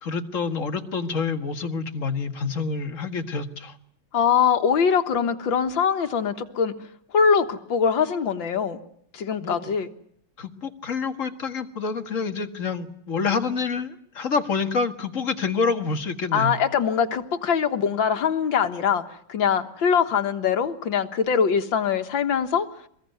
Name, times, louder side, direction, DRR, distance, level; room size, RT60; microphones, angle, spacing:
voice 1, 0.0-3.8 9.4-9.6 10.4-16.5, left 4 dB, 45° left, 7 dB, 2.1 m, -27 dB
voice 2, 4.1-6.7 7.1-8.8 9.1-9.9 16.3-19.0 19.3-22.7, left 7 dB, 90° left, 7 dB, 2.2 m, -22 dB
24.5 x 21.5 x 9.3 m, 0.67 s
omnidirectional pair, 2.0 m